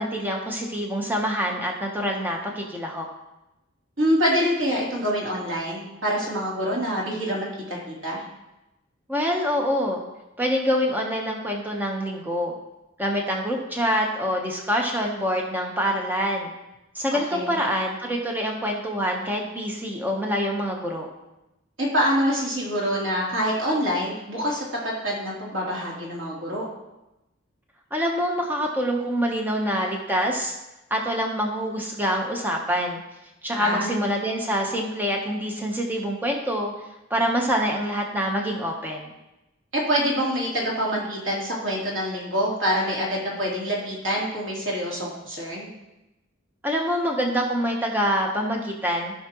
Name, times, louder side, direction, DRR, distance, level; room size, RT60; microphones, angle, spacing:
voice 1, 0.0-3.1 9.1-10.0 10.4-12.5 13.0-16.5 16.9-21.1 27.9-30.5 30.9-33.0 33.4-36.7 37.1-39.1 46.6-49.1, equal, 10° right, 0 dB, 0.9 m, -25 dB
voice 2, 4.0-8.2 17.1-17.6 21.8-26.7 33.5-34.0 39.7-45.7, equal, 80° right, -5 dB, 3.1 m, -26 dB
15.5 x 5.8 x 3.0 m, 0.96 s
head